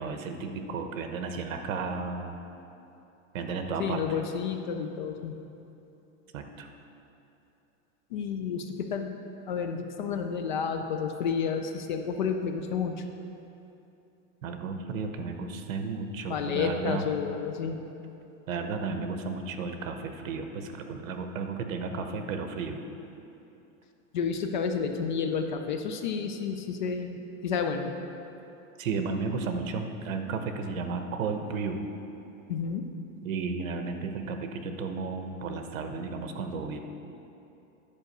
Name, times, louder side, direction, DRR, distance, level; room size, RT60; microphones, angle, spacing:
voice 1, 0.0-2.4 3.3-4.0 6.3-6.7 14.4-17.1 18.5-22.8 28.8-31.8 33.2-36.8, right 4 dB, 75° right, 6 dB, 1.1 m, -33 dB
voice 2, 3.8-5.3 8.1-9.2 9.5-13.0 16.3-17.8 24.1-27.9 32.5-32.8, left 6 dB, 40° left, 6 dB, 0.4 m, -30 dB
10.5 x 5.1 x 6.6 m, 2.9 s
supercardioid pair, 180°, 40 cm